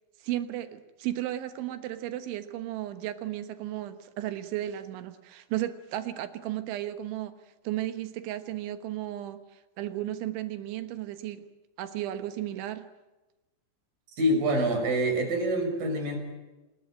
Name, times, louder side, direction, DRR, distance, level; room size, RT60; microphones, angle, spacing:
voice 1, 0.2-7.3 7.6-11.5 11.8-12.9, right 13 dB, 75° right, 11 dB, 3.5 m, -34 dB
voice 2, 14.1-16.2, right 1 dB, 45° right, 4 dB, 7.1 m, -26 dB
27.0 x 20.5 x 8.8 m, 1.1 s
omnidirectional pair, 5.6 m